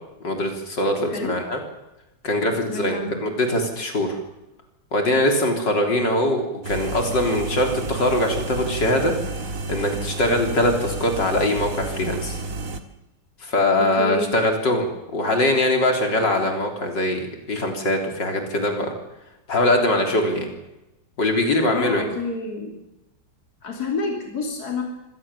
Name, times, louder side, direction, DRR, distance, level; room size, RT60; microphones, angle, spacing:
voice 1, 0.2-1.6 2.2-4.2 4.9-9.1 9.7-12.4 13.4-18.9 19.5-20.5 21.2-22.0, left 1 dB, 70° left, 3 dB, 4.1 m, -22 dB
voice 2, 2.7-3.3 13.8-14.3 21.7-22.8 23.6-24.8, left 3 dB, 55° left, 2 dB, 3.5 m, -29 dB
sound 1, 6.6-12.8, right 3 dB, 45° right, 2.0 m, -31 dB
25.0 x 17.5 x 7.2 m, 0.95 s
omnidirectional pair, 2.0 m